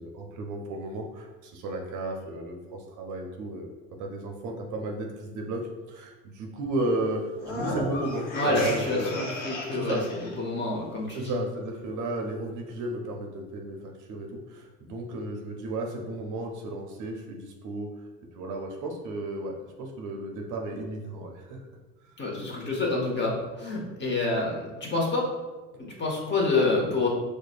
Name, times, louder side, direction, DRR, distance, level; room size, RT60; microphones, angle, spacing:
voice 1, 0.0-3.7 4.0-5.6 5.9-9.1 9.7-10.0 11.1-17.9 18.3-21.6, right 2 dB, 50° right, 2 dB, 0.6 m, -34 dB
sound 1, 7.4-10.3, left 1 dB, 55° left, 0.9 m, -34 dB
voice 2, 8.4-11.4 22.2-25.3 25.8-27.1, left 2 dB, 25° left, -2 dB, 1.0 m, -28 dB
4.7 x 2.2 x 2.4 m, 1.2 s
hypercardioid pair, 75°, 40 cm